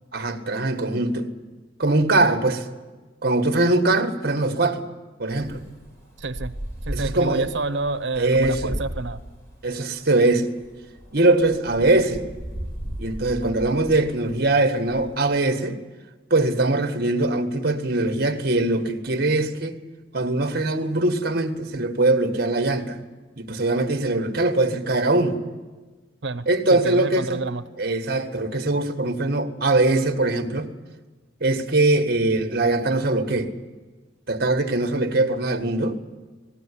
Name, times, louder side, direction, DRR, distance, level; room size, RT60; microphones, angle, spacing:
voice 1, 0.1-1.3 1.8-2.7 3.2-4.8 5.2-5.6 6.9-7.5 8.2-8.8 9.6-10.5 11.1-12.3 13.0-15.8 16.3-19.7 20.1-23.0 23.4-25.4 26.5-27.4 27.8-30.7 31.4-33.5 34.3-36.0, right 2 dB, 55° right, 1.6 m, -22 dB
Wind, 5.3-15.2, right 1 dB, 15° left, 4.8 m, -36 dB
voice 2, 6.2-6.5 6.8-9.2 26.2-27.6, right 3 dB, 75° right, 0.9 m, -29 dB
19.5 x 16.5 x 9.9 m
head